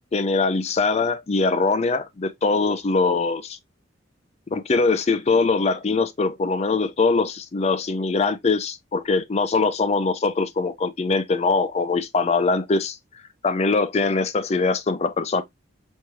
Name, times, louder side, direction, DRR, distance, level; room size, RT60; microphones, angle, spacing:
voice 1, 0.1-3.6 4.5-13.0 13.4-15.4, left 4 dB, 35° left, 0.4 m, -22 dB
4.5 x 3.1 x 2.3 m
head